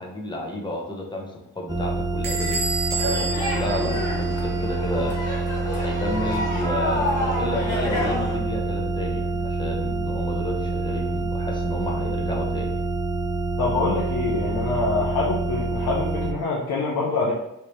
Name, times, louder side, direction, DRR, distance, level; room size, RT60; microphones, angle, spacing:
voice 1, 0.0-2.6 2.9-5.1 5.7-12.8, left 1 dB, 15° left, -1 dB, 0.9 m, -31 dB
sound 1, 1.7-16.3, right 2 dB, 10° right, 0.5 m, -27 dB
Bell / Door, 2.2-4.7, right 3 dB, 65° right, 1.1 m, -30 dB
sound 2, 3.0-8.4, left 1 dB, 50° left, 1.4 m, -29 dB
voice 2, 13.6-17.3, left 3 dB, 75° left, -4 dB, 0.7 m, -25 dB
3.3 x 2.7 x 3.1 m, 0.85 s
cardioid pair, 70°, 36 cm